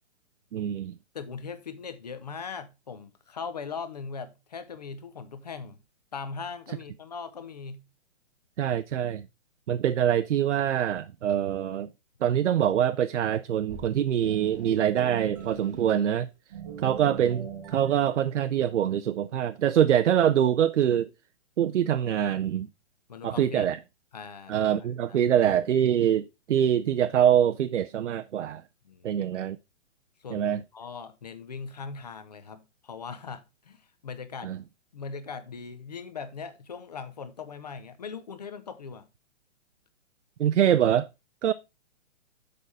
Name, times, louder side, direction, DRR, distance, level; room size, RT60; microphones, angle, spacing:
voice 1, 0.5-0.9 8.6-9.2 9.7-11.9 12.2-16.3 16.8-21.1 21.6-22.7 23.2-23.8 24.5-28.6 29.0-29.6 30.3-30.6 34.4-34.6 40.4-41.1 41.4-41.5, right 10 dB, 70° right, 0.6 m, -24 dB
voice 2, 1.1-5.8 6.1-7.8 23.1-23.7 24.1-24.6 25.1-25.2 28.8-29.2 30.2-34.6 34.9-39.1, left 5 dB, 35° left, 0.7 m, -40 dB
sound 1, 13.7-16.2 16.5-18.0, right 7 dB, 15° right, 0.9 m, -40 dB
6.8 x 5.6 x 4.7 m
hypercardioid pair, 180°, 38 cm